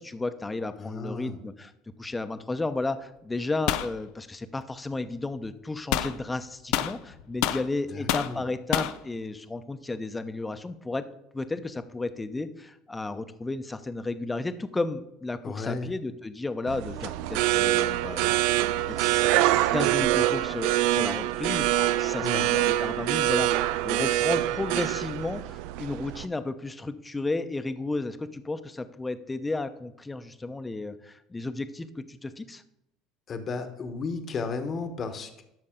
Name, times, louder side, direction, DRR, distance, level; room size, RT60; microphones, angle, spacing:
voice 1, 0.0-1.7 2.0-11.1 11.3-18.5 18.9-32.6, left 2 dB, 15° left, 11 dB, 0.8 m, -33 dB
voice 2, 0.8-1.4 7.9-8.4 15.4-15.9 22.2-22.5 33.3-35.4, left 4 dB, 40° left, 8 dB, 1.2 m, -34 dB
sound 1, 3.7-3.9 5.9-6.1 6.7-7.7 8.1-8.3 8.7-9.0, left 12 dB, 65° left, 0.5 m, -27 dB
sound 2, 16.7-26.3, right 14 dB, 70° right, 0.4 m, -25 dB
12.5 x 6.5 x 3.8 m, 0.84 s
hypercardioid pair, 70°, 0 cm